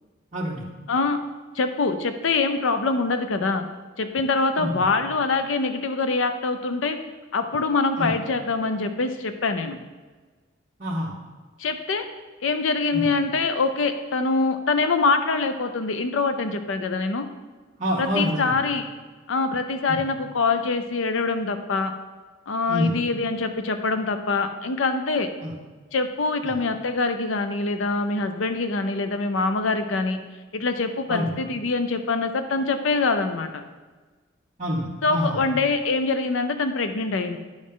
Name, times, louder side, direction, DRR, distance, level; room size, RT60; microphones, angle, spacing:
voice 1, 0.3-0.6 4.6-4.8 8.0-8.1 10.8-11.1 12.9-13.1 17.8-18.6 19.9-20.0 22.7-22.9 25.4-25.5 26.4-26.6 31.1-31.3 34.6-35.4, equal, 40° right, -6 dB, 1.1 m, -26 dB
voice 2, 0.9-1.2 1.5-3.6 4.0-7.0 7.3-9.8 11.6-12.0 12.4-17.3 18.0-18.9 19.3-21.9 22.5-25.3 25.9-30.2 30.5-33.6 35.0-37.4, left 3 dB, 80° left, 8 dB, 0.6 m, -24 dB
9.7 x 6.3 x 3.7 m, 1.4 s
head